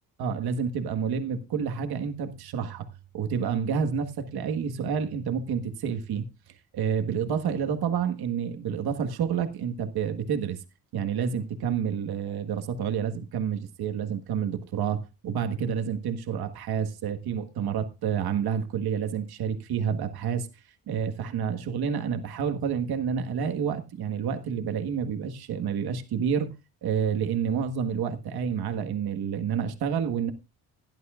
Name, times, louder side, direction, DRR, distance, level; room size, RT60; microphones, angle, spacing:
voice 1, 0.2-2.9 3.1-6.3 6.7-10.6 10.9-20.5 20.9-26.5 26.8-30.3, right 7 dB, 85° right, 1.6 m, -29 dB
16.5 x 11.5 x 2.4 m
cardioid pair, 145°, 37 cm